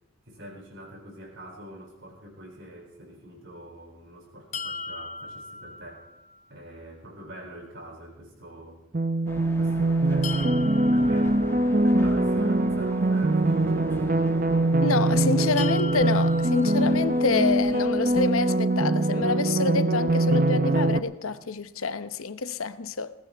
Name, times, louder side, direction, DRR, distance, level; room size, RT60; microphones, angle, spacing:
voice 1, 0.3-6.2 6.5-8.8 9.4-11.4 12.0-14.2 16.6-17.0 17.3-17.5, equal, 60° right, 7.9 m, -44 dB
sound 1, 4.5-6.5 10.2-12.3 15.6-17.6, left 4 dB, 30° left, 0.5 m, -39 dB
sound 2, 8.9-21.0, right 2 dB, 40° right, 0.7 m, -23 dB
sound 3, 9.3-18.3, left 1 dB, 10° left, 1.3 m, -44 dB
voice 2, 14.8-23.1, left 4 dB, 80° left, 0.9 m, -27 dB
21.0 x 18.5 x 3.5 m
head